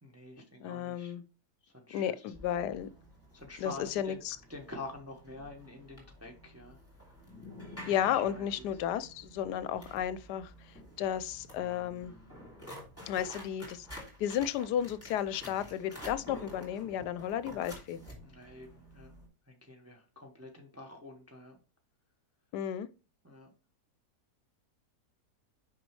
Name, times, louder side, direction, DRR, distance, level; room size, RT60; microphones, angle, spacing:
voice 1, 0.0-1.1 1.6-2.3 3.3-4.2 4.5-6.8 8.1-8.4 18.2-18.7 18.9-19.1 19.5-21.6 23.2-23.5, left 2 dB, 10° right, 1.0 m, -47 dB
voice 2, 0.6-1.2 1.9-2.9 3.6-4.4 7.9-10.5 11.0-12.1 13.1-13.9 14.2-18.0 22.5-22.9, left 10 dB, 80° left, 1.1 m, -33 dB
sound 1, 2.3-19.3, left 1 dB, 10° left, 2.7 m, -50 dB
6.1 x 5.4 x 3.2 m
omnidirectional pair, 1.8 m